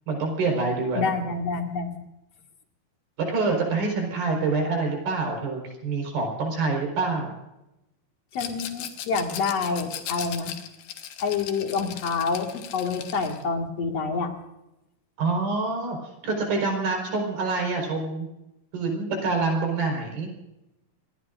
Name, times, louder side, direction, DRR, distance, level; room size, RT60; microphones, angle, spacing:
voice 1, 0.1-1.1 3.3-7.3 15.2-16.0 16.2-18.3 18.7-20.3, right 3 dB, 75° right, 1 dB, 6.5 m, -26 dB
voice 2, 1.0-2.0 8.3-10.5 11.2-14.3, left 4 dB, 50° left, 3 dB, 2.7 m, -27 dB
Rattle, 8.3-13.4, left 10 dB, 85° left, 3.3 m, -38 dB
27.0 x 20.5 x 2.6 m, 0.92 s
omnidirectional pair, 4.4 m